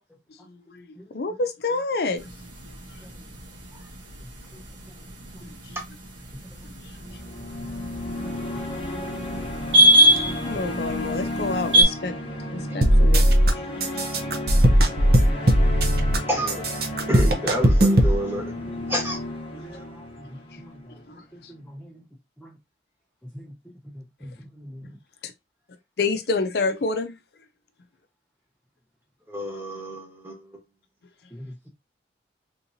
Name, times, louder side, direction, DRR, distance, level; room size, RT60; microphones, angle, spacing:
voice 1, 0.5-0.9 1.1-2.2 5.6-5.8 10.5-12.2 12.5-13.3 13.6-14.3 15.3-15.4 21.1-21.2 25.2-25.3 26.0-27.1, left 3 dB, 60° left, 0.5 m, -28 dB
sound 1, 2.2-11.8, right 1 dB, 85° right, 1.2 m, -24 dB
sound 2, 6.9-21.1, left 1 dB, 30° left, 0.9 m, -33 dB
sound 3, 12.8-13.5 13.8-16.2 16.5-18.1, equal, 55° right, 0.7 m, -18 dB
voice 2, 16.3-18.5 18.9-19.2 19.7-19.8 29.3-30.5, equal, 15° right, 1.2 m, -29 dB
voice 3, 18.6-18.9 19.5-20.0 20.3-20.8 21.3-22.0 22.4-22.5 23.3-23.5 24.0-25.0 31.3-31.7, equal, 5° left, 0.5 m, -45 dB
3.7 x 2.8 x 2.7 m
head